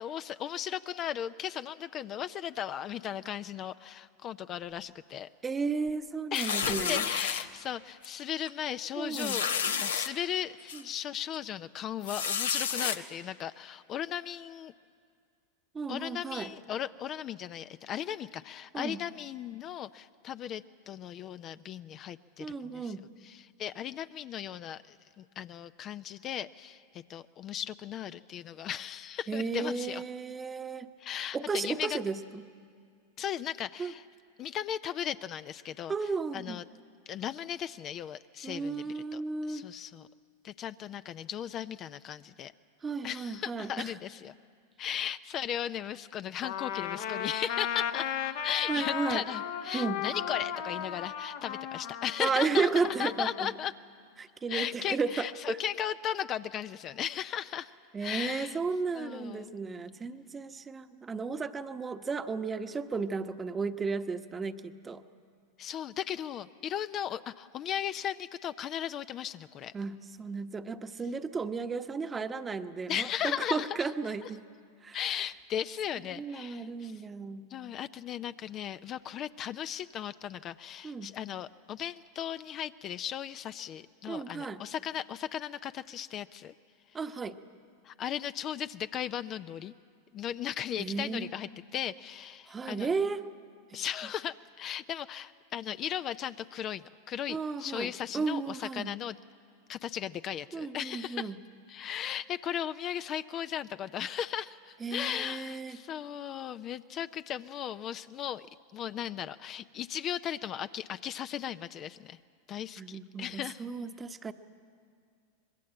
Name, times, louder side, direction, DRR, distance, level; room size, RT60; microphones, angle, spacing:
voice 1, 0.0-5.3 6.3-14.7 15.9-22.9 23.2-30.0 31.0-32.0 33.2-34.0 34.4-35.9 36.3-36.6 37.1-39.2 39.5-40.1 40.4-42.5 43.0-44.3 44.8-53.7 54.5-57.7 58.0-58.6 58.9-59.5 65.6-69.7 72.9-73.8 74.2-74.3 74.9-77.0 77.5-86.5 87.8-89.7 90.1-92.9 93.7-99.2 99.7-101.3 101.7-108.5 108.7-112.2 112.5-113.6, left 10 dB, 40° left, 12 dB, 0.5 m, -37 dB
voice 2, 5.4-7.0 9.0-9.4 10.7-10.8 15.7-16.5 18.7-19.0 22.4-23.0 29.3-30.9 31.3-32.4 33.8-33.9 35.9-36.6 38.4-39.7 42.8-43.9 48.7-49.2 49.7-50.0 52.2-53.5 54.2-55.6 57.9-65.0 69.7-74.4 74.8-75.0 76.2-77.5 80.8-81.1 84.1-84.6 86.9-87.4 90.8-91.3 92.5-93.2 93.7-93.8 97.3-98.9 100.5-101.3 104.8-105.8 112.8-114.3, right 4 dB, 20° right, 9 dB, 1.0 m, -34 dB
sound 1, 6.3-7.4 8.0-8.2 8.5-8.6 9.1-10.1 10.7-10.8 12.0-13.0, left 7 dB, 85° left, 1.0 m, -30 dB
Trumpet, 46.4-53.5, left 9 dB, 65° left, 1.2 m, -36 dB
24.5 x 21.5 x 7.8 m, 2.2 s
hypercardioid pair, 100°, 0 cm